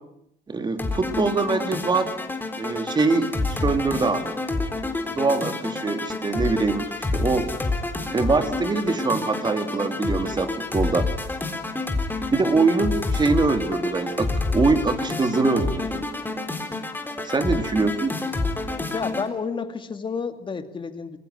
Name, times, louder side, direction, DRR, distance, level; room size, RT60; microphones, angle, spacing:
voice 1, 0.5-2.1 2.5-4.4 5.1-7.5 8.1-11.1 12.3-16.0 17.2-18.2, right 3 dB, 25° right, 8 dB, 3.1 m, -23 dB
sound 1, 0.8-19.3, left 2 dB, 10° left, 3.8 m, -28 dB
voice 2, 18.9-21.2, left 5 dB, 30° left, 8 dB, 2.6 m, -30 dB
25.0 x 22.5 x 9.6 m, 0.78 s
cardioid pair, 110°, 17 cm